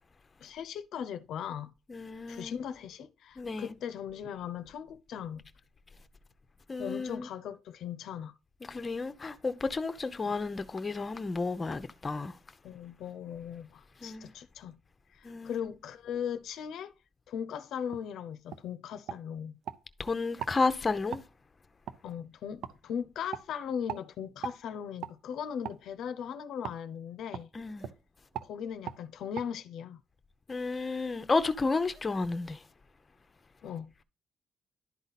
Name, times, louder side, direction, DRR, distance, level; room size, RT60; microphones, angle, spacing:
voice 1, 0.4-1.7 2.3-5.4 6.8-8.3 10.2-10.3 12.6-14.8 15.1-16.9 17.3-19.6 22.0-27.5 28.4-30.0 33.6-34.0, left 8 dB, 75° left, 0.6 m, -38 dB
voice 2, 1.9-2.5 3.4-3.7 6.7-7.3 8.7-12.3 14.0-14.3 15.2-15.7 20.0-21.2 27.5-27.9 30.5-32.6, left 3 dB, 30° left, 0.7 m, -32 dB
sound 1, 17.9-18.1 18.5-18.6 19.1-19.8 20.4-20.6 21.1-21.3 21.9-22.0 22.6-22.7 23.3-23.5 23.9-24.0 24.4-24.6 25.0-25.1 25.6-25.8 26.6-26.8 27.3-27.5 27.8-28.0 28.3-28.5 28.8-29.0 29.3-29.5, right 9 dB, 80° right, 0.6 m, -39 dB
11.5 x 4.0 x 4.1 m
cardioid pair, 90°, 0 cm